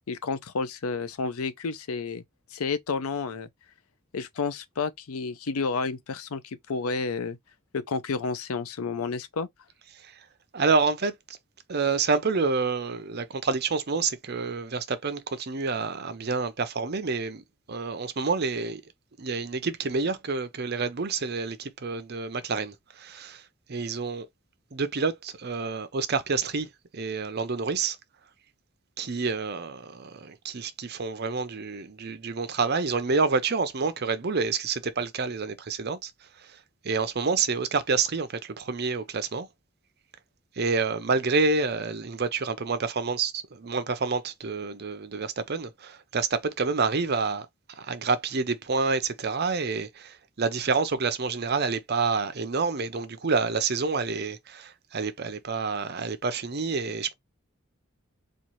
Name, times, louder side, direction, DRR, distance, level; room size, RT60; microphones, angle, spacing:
voice 1, 0.0-2.2 2.5-3.5 4.1-7.4 7.7-9.5, left 4 dB, 90° left, 0.6 m, -31 dB
voice 2, 9.9-10.3 10.5-11.4 11.7-17.4 17.7-18.8 19.2-24.3 24.7-28.0 29.0-36.1 36.4-36.6 36.8-39.5 40.6-57.1, right 4 dB, 50° right, 0.6 m, -28 dB
4.3 x 2.5 x 3.0 m
head